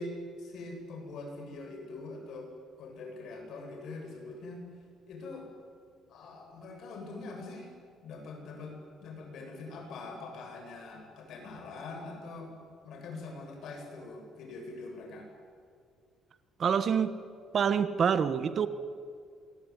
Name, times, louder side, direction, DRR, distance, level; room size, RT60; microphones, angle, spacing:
voice 1, 0.0-2.5 2.8-4.6 5.1-5.5 6.1-7.7 8.0-12.5 12.8-15.3, left 2 dB, 60° left, 3 dB, 7.8 m, -43 dB
voice 2, 16.6-17.2 17.5-18.7, right 7 dB, 40° right, 12 dB, 1.2 m, -26 dB
27.0 x 22.0 x 10.0 m, 2.2 s
cardioid pair, 160°, 0 cm